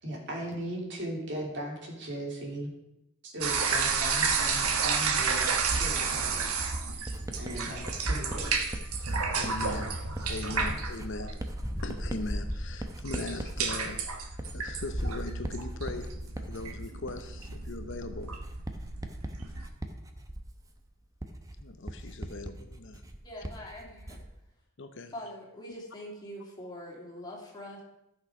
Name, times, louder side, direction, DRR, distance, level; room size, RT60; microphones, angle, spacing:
voice 1, 0.0-2.7 3.2-6.4 6.9-7.1 7.4-8.8 9.7-9.8 10.4-10.8, right 1 dB, 55° right, 0 dB, 3.0 m, -38 dB
sound 1, 3.4-19.7, right 5 dB, 85° right, 1.3 m, -32 dB
Writing, 7.1-24.4, right 1 dB, 15° right, 0.8 m, -42 dB
sound 2, 8.8-9.2 9.7-9.9 10.3-15.1, equal, ahead, 0.4 m, -38 dB
voice 2, 9.3-10.0 10.2-11.4 11.8-18.4 21.6-23.0 24.8-25.1, left 2 dB, 55° left, 8 dB, 0.8 m, -40 dB
voice 3, 23.2-24.2 25.1-27.8, left 1 dB, 20° left, -3 dB, 2.7 m, -43 dB
14.0 x 6.5 x 4.9 m, 0.87 s
head